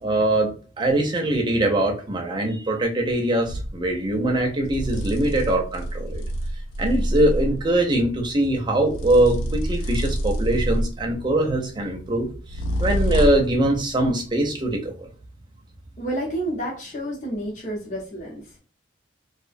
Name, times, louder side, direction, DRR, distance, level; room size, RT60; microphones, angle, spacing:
voice 1, 0.0-6.2 6.8-15.1, right 1 dB, 25° right, 2 dB, 0.4 m, -22 dB
sound 1, 3.4-3.8 4.7-7.7 8.9-11.1 12.5-13.6, right 1 dB, 80° left, 0.3 m, -26 dB
voice 2, 16.0-18.6, right 1 dB, 40° left, -4 dB, 0.6 m, -30 dB
2.5 x 2.0 x 2.5 m, 0.39 s
head